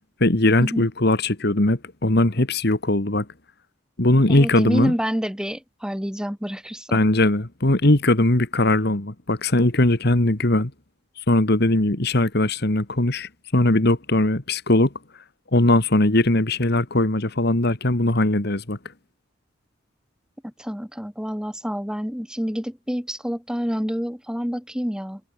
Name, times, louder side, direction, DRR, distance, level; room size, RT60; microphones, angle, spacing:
voice 1, 0.2-3.3 4.0-4.9 6.9-10.7 11.3-14.9 15.5-18.8, left 1 dB, 55° left, 1.9 m, -20 dB
voice 2, 4.3-6.9 20.4-25.3, equal, 5° right, 2.9 m, -28 dB
head